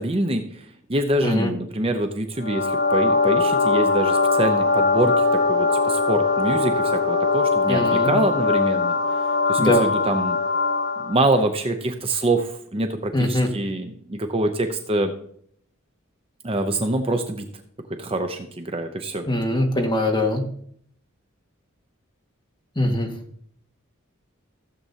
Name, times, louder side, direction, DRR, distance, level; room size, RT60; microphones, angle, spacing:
voice 1, 0.0-10.4 11.0-15.1 16.4-17.5 18.0-19.2, right 2 dB, 30° right, 6 dB, 0.7 m, -25 dB
sound 1, 2.4-11.2, left 4 dB, 60° left, 3.7 m, -21 dB
voice 2, 7.7-8.1 9.6-9.9 13.1-13.5 19.3-20.4 22.8-23.1, left 1 dB, 20° left, 1 dB, 1.7 m, -21 dB
15.5 x 7.6 x 2.8 m, 0.64 s
head